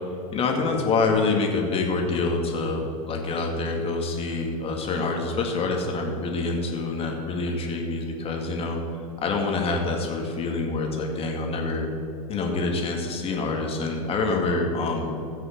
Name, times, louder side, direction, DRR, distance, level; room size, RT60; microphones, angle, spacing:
voice 1, 0.3-8.8 9.2-11.9 12.3-15.1, left 3 dB, 30° left, 1 dB, 2.2 m, -26 dB
15.5 x 6.5 x 4.6 m, 2.7 s
hypercardioid pair, 110°, 19 cm